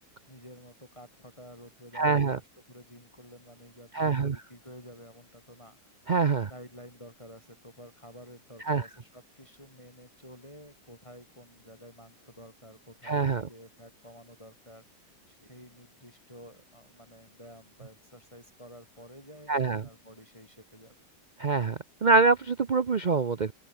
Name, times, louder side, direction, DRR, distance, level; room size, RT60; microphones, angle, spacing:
voice 1, 0.0-6.0 6.5-21.0, equal, 15° left, 6.8 m, -51 dB
voice 2, 1.9-2.4 3.9-4.4 6.1-6.5 8.7-8.8 13.0-13.5 19.5-19.8 21.4-23.5, right 4 dB, 80° right, 0.4 m, -25 dB
omnidirectional pair, 2.0 m